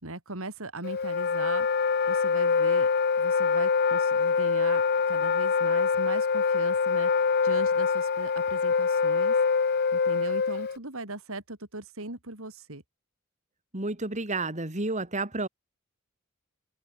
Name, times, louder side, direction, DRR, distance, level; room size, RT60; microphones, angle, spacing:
voice 1, 0.0-1.7 2.1-2.9 3.2-4.8 5.1-9.4 9.9-12.8, right 2 dB, 65° right, 4.3 m, -39 dB
Wind instrument woodwind instrument, 0.8-10.8, left 5 dB, 50° left, 0.7 m, -25 dB
voice 2, 13.7-15.5, right 2 dB, 35° right, 3.0 m, -30 dB
head